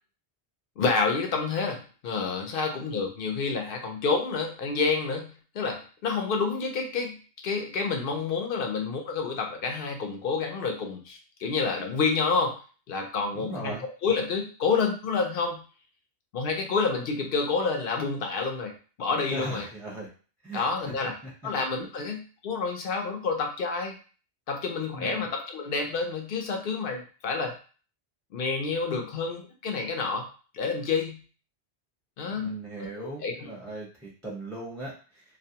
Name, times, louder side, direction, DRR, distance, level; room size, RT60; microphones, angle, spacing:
voice 1, 0.8-7.2 7.4-12.6 12.9-15.6 16.3-19.7 20.5-21.1 21.4-24.0 24.5-27.6 28.3-30.3 30.5-31.2 32.2-32.6 32.9-33.5, left 4 dB, 60° left, 4 dB, 0.7 m, -29 dB
voice 2, 13.3-13.8 19.3-20.1 20.4-20.6 21.2-21.3 24.9-25.3 32.4-35.2, right 1 dB, ahead, -4 dB, 0.5 m, -38 dB
2.4 x 2.1 x 2.7 m, 0.38 s
omnidirectional pair, 1.1 m